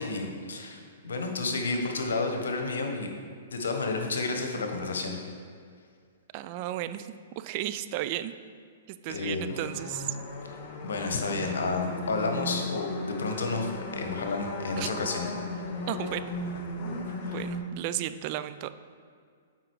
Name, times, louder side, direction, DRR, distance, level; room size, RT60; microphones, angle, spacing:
voice 1, 0.0-3.1 3.5-5.2 9.1-9.5 10.8-15.6 17.0-17.4, left 3 dB, 80° left, 3 dB, 1.1 m, -31 dB
voice 2, 6.3-7.1 7.4-8.3 9.0-10.2 14.8-14.9 15.9-16.3 17.2-18.7, right 13 dB, 45° right, 12 dB, 0.3 m, -34 dB
sound 1, 9.5-17.6, left 2 dB, 45° left, 1.2 m, -36 dB
7.7 x 5.1 x 4.7 m, 2.1 s
hypercardioid pair, 130°, 0 cm